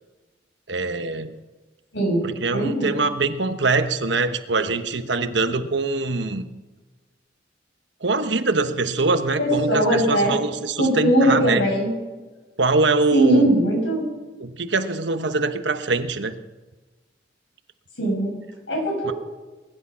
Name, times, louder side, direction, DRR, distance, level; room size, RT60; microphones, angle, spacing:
voice 1, 0.7-1.3 2.2-6.4 8.0-11.6 12.6-13.5 14.4-16.3 19.0-19.1, right 3 dB, 75° right, 9 dB, 1.1 m, -23 dB
voice 2, 1.9-2.9 9.4-10.3 10.8-11.9 13.1-14.1 18.0-18.4 18.7-19.1, right 1 dB, 85° left, 0 dB, 6.3 m, -20 dB
20.5 x 11.0 x 5.7 m, 1.2 s
head